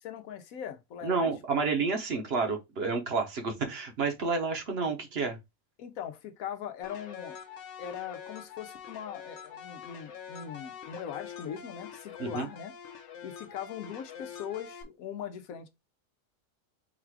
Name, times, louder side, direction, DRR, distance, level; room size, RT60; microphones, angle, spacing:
voice 1, 0.0-1.6 5.8-7.4 7.8-12.7 13.2-15.7, left 9 dB, 90° left, 1.1 m, -40 dB
voice 2, 1.0-5.4 12.2-12.5, right 4 dB, 50° right, 1.1 m, -30 dB
sound 1, 6.8-14.8, left 7 dB, 65° left, 0.9 m, -45 dB
4.0 x 2.4 x 4.5 m
omnidirectional pair, 1.4 m